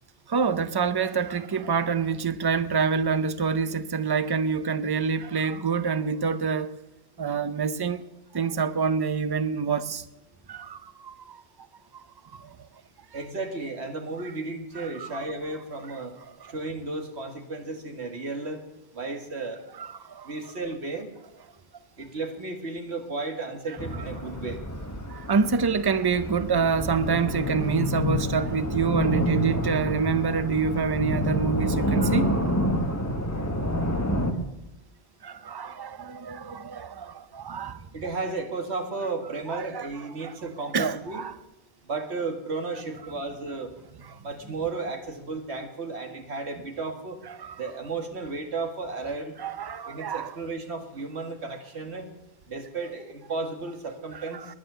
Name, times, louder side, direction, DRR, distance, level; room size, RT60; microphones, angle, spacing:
voice 1, 0.3-6.8 7.2-8.0 8.3-10.0 10.5-11.4 11.9-12.0 12.3-12.6 14.8-15.2 16.4-16.5 19.8-20.3 25.1-32.7 35.2-37.9 39.5-39.9 40.2-40.4 40.7-41.3 44.1-44.2 47.3-47.6 49.4-50.3 54.1-54.5, right 5 dB, 25° right, 0.6 m, -27 dB
voice 2, 13.1-16.1 16.5-18.6 18.9-19.6 20.3-21.1 22.0-24.6 37.9-41.2 41.8-43.7 44.2-47.2 47.6-49.4 49.9-52.1 52.5-54.4, right 3 dB, 80° right, 2.1 m, -33 dB
sound 1, 23.8-34.3, equal, 15° left, 1.4 m, -28 dB
20.5 x 9.7 x 6.8 m
omnidirectional pair, 1.1 m